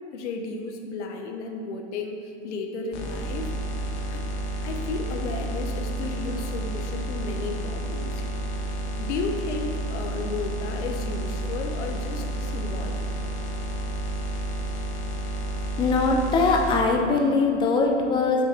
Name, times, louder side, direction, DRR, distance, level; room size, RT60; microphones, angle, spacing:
voice 1, 0.1-3.5 4.1-4.2 4.6-8.2 9.0-13.1, left 3 dB, 75° left, 4 dB, 0.9 m, -33 dB
sound 1, 2.9-16.8, right 1 dB, 55° left, 0.9 m, -30 dB
voice 2, 15.8-18.4, left 3 dB, 15° left, 2 dB, 0.4 m, -21 dB
6.5 x 3.8 x 4.4 m, 2.5 s
supercardioid pair, 140°, 35 cm